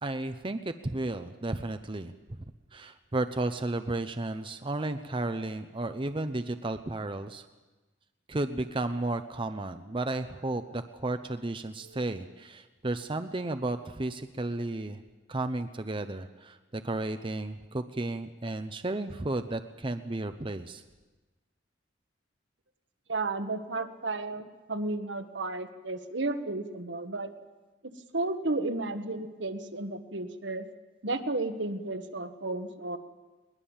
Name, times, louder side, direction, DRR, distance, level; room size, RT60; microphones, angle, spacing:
voice 1, 0.0-2.4 2.7-7.5 8.3-15.0 15.3-16.6 16.8-20.8, right 2 dB, 25° right, 8 dB, 0.7 m, -33 dB
voice 2, 23.1-27.3 28.1-30.6 31.0-33.0, right 2 dB, 70° right, 8 dB, 1.4 m, -33 dB
21.5 x 19.5 x 7.3 m, 1.2 s
head